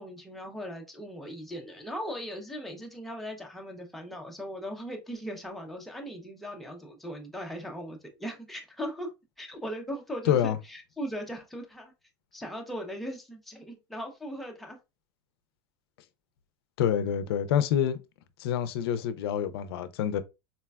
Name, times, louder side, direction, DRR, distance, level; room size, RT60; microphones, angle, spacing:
voice 1, 0.0-9.1 9.4-11.9 12.3-14.8, equal, ahead, 0.4 m, -39 dB
voice 2, 10.3-10.6 16.8-18.0 18.4-20.2, left 9 dB, 75° left, 0.4 m, -27 dB
4.0 x 2.1 x 2.2 m
supercardioid pair, 160°, 13 cm